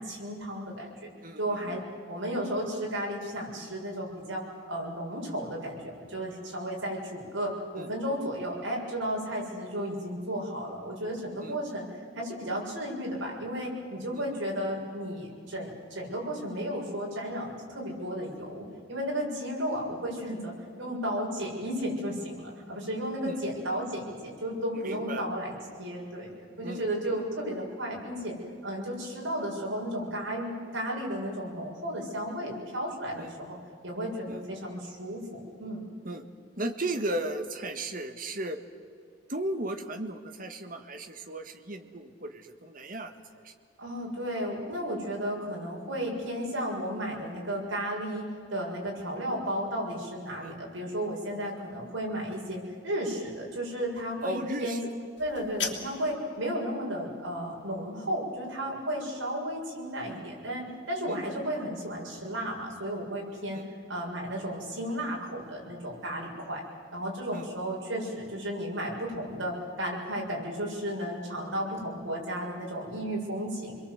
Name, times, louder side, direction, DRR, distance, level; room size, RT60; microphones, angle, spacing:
voice 1, 0.0-1.1 1.4-11.8 12.2-26.3 26.6-28.4 28.6-33.6 33.8-35.8 43.8-54.8 55.2-63.6 63.9-66.6 66.9-73.7, equal, 85° right, -2 dB, 6.9 m, -34 dB
voice 2, 1.2-1.8 7.8-7.9 11.4-11.6 14.1-14.6 23.2-23.4 24.7-25.2 26.6-26.8 27.1-27.2 33.2-33.3 34.3-34.4 36.0-36.3 36.6-38.6 39.3-43.5 50.4-50.6 54.2-54.8 61.1-61.2 63.5-63.6 67.3-67.5, right 1 dB, 45° right, 7 dB, 1.8 m, -36 dB
sound 1, 55.2-56.2, left 6 dB, 65° left, 3.1 m, -36 dB
28.0 x 22.0 x 8.1 m, 2.3 s
head